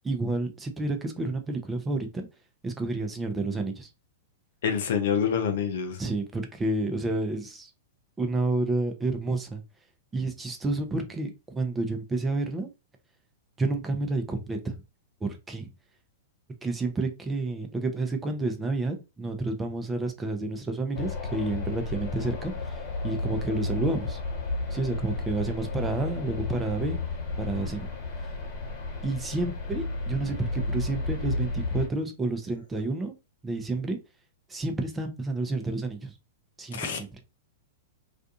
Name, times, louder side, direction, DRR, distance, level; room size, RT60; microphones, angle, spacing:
voice 1, 0.0-2.3 2.6-3.9 6.0-7.7 8.2-9.6 10.1-12.7 13.6-14.8 15.2-15.7 16.6-24.2 24.7-27.0 27.4-27.9 29.0-33.1 33.4-34.0 34.5-36.1 36.6-37.2, right 2 dB, 15° right, 0.5 m, -30 dB
voice 2, 4.6-6.0 36.7-37.0, left 7 dB, 65° left, 0.6 m, -26 dB
sound 1, 20.9-31.9, left 3 dB, 45° left, 1.3 m, -32 dB
2.5 x 2.3 x 2.6 m
hypercardioid pair, 110°, 0 cm